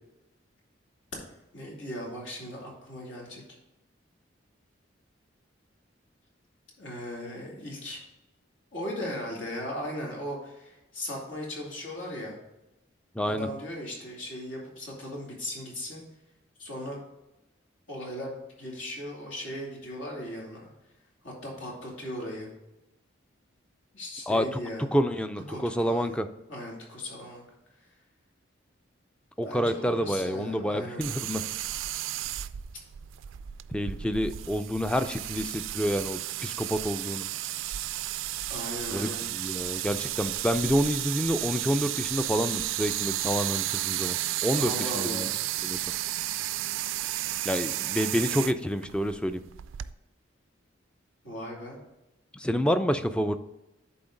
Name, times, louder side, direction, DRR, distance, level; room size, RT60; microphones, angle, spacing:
voice 1, 1.5-3.4 6.8-8.0 8.7-12.4 13.2-16.0 16.6-17.0 17.9-20.7 21.2-22.5 23.9-24.9 25.5-26.2 26.5-27.4 29.4-31.0 38.5-39.3 44.6-45.3 51.2-51.8, left 1 dB, 80° left, -2 dB, 2.7 m, -37 dB
voice 2, 13.1-13.5 24.3-24.6 24.9-26.3 29.4-31.4 33.7-37.3 38.9-45.3 45.6-45.8 47.4-49.4 52.3-53.4, equal, 5° left, 10 dB, 0.3 m, -28 dB
sound 1, 31.0-49.9, right 14 dB, 85° right, 0.3 m, -33 dB
11.0 x 4.3 x 3.9 m, 0.97 s
head